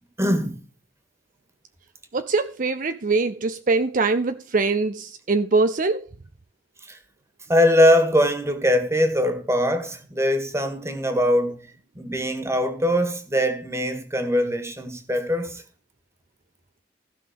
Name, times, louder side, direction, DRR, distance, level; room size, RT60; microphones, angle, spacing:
voice 1, 0.2-0.6 6.8-7.0 7.5-11.6 12.0-15.6, equal, 15° right, 1.9 m, -22 dB
voice 2, 2.1-6.1, right 3 dB, 45° right, 0.6 m, -23 dB
16.0 x 5.8 x 5.2 m
head